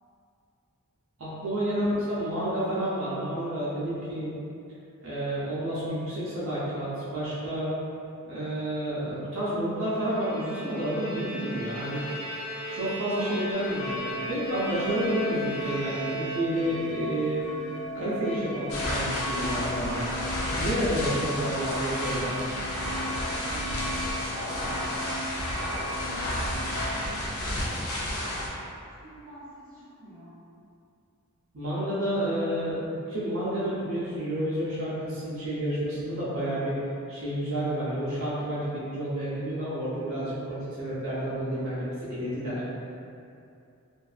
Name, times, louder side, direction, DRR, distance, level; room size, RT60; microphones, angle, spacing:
voice 1, 1.2-4.3 5.0-7.7 8.3-12.0 12.7-17.4 17.9-20.0 20.6-22.4 31.5-36.8 37.1-42.6, right 1 dB, 60° right, -10 dB, 0.6 m, -30 dB
Bowed string instrument, 9.9-16.9, right 1 dB, 25° left, 1.2 m, -37 dB
voice 2, 13.1-13.6 21.8-22.7 23.3-25.2 25.8-27.3 27.6-28.3 29.0-30.3, right 1 dB, 5° left, -16 dB, 1.4 m, -47 dB
sound 1, 13.5-27.0, left 1 dB, 60° left, 1.0 m, -37 dB
sound 2, 18.7-28.5, left 1 dB, 75° left, 0.5 m, -31 dB
2.5 x 2.3 x 2.4 m, 2.6 s
head